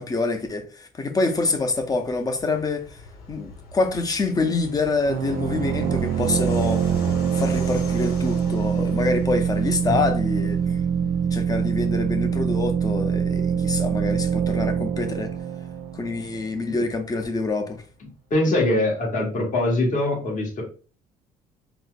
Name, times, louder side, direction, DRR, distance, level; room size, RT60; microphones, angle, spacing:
voice 1, 0.0-2.9 3.3-6.9 7.3-10.6 11.3-15.3 15.9-17.8, left 3 dB, 20° left, 0.6 m, -26 dB
Fixed-wing aircraft airplane, 1.3-17.5, left 2 dB, 90° left, 1.2 m, -43 dB
sound 1, 5.1-16.6, right 7 dB, 75° right, 0.4 m, -24 dB
voice 2, 18.3-20.6, left 2 dB, 50° left, 1.4 m, -23 dB
4.2 x 2.1 x 2.5 m
cardioid pair, 110°, 17 cm